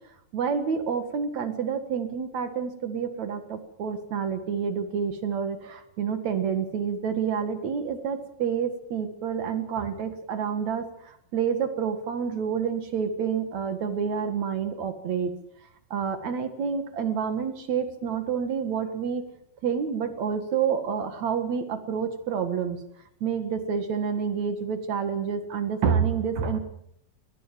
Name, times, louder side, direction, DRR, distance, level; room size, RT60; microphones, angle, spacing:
voice 1, 0.3-15.3 15.9-19.2 19.6-22.8 23.2-26.6, right 7 dB, 50° right, 8 dB, 2.6 m, -28 dB
21.5 x 19.0 x 7.5 m, 0.73 s
omnidirectional pair, 4.7 m